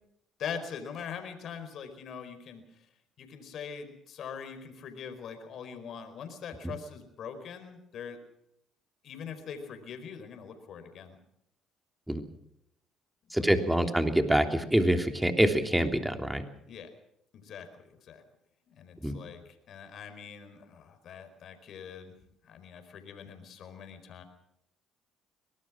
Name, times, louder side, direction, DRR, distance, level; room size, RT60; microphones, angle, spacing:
voice 1, 0.4-2.9 3.2-8.2 9.0-11.2 13.4-13.9 16.6-16.9 17.3-18.2 18.7-19.4 19.7-22.1 22.4-24.2, left 7 dB, 60° left, 8 dB, 4.7 m, -43 dB
voice 2, 13.3-16.5 19.0-19.1, right 1 dB, 5° right, 6 dB, 3.1 m, -25 dB
24.0 x 19.0 x 6.2 m, 0.77 s
supercardioid pair, 75°, 0 cm